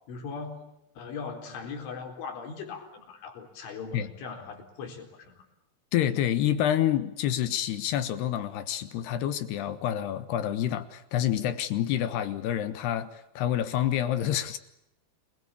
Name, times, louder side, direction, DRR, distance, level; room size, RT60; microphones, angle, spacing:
voice 1, 0.1-0.7 1.0-5.5, left 5 dB, 90° left, 3 dB, 6.6 m, -39 dB
voice 2, 5.9-14.6, left 11 dB, 70° left, 11 dB, 3.1 m, -28 dB
28.0 x 21.5 x 8.7 m, 0.84 s
omnidirectional pair, 5.3 m